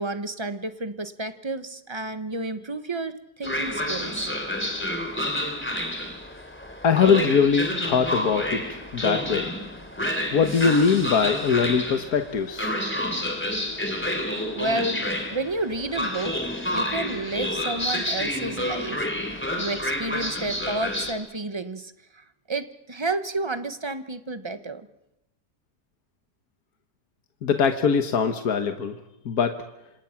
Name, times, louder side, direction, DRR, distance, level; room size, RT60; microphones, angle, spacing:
voice 1, 0.0-4.3 14.1-14.2 14.5-24.9, right 2 dB, 20° right, 10 dB, 1.1 m, -31 dB
Train, 3.4-21.1, left 1 dB, 5° left, 3.2 m, -29 dB
voice 2, 6.8-9.5 10.3-12.7 27.4-29.0 29.3-29.6, left 6 dB, 85° left, 6 dB, 1.8 m, -22 dB
27.5 x 27.0 x 5.9 m, 0.91 s
omnidirectional pair, 1.6 m